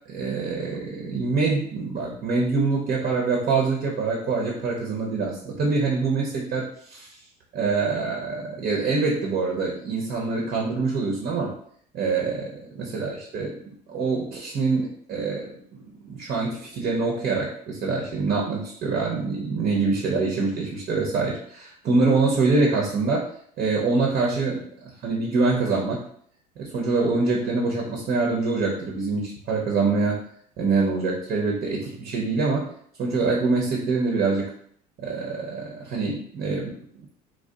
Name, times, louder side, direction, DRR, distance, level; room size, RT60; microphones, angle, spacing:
voice 1, 0.1-7.2 7.5-11.5 11.9-13.6 13.9-23.3 23.6-26.1 26.6-30.2 30.6-32.7 33.0-34.5 35.0-36.9, right 4 dB, 45° right, -1 dB, 0.6 m, -25 dB
2.6 x 2.1 x 2.3 m, 0.63 s
hypercardioid pair, 80°, 21 cm